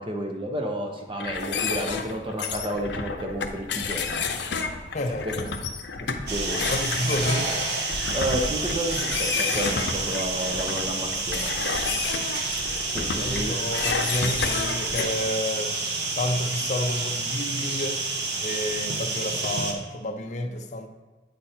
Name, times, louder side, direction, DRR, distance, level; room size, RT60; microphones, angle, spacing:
voice 1, 0.0-4.3 5.2-5.3 5.9-6.6 8.1-11.5 12.9-13.5, right 1 dB, 30° right, 2 dB, 1.0 m, -31 dB
sound 1, 1.2-15.1, left 5 dB, 75° left, 0.7 m, -30 dB
voice 2, 4.9-5.5 6.6-7.5 11.0-11.4 13.2-15.7 16.2-18.0 18.4-20.9, left 1 dB, 40° left, 4 dB, 0.6 m, -30 dB
sound 2, 6.3-19.7, right 3 dB, 65° right, 1.2 m, -29 dB
8.6 x 5.1 x 4.4 m, 1.3 s
head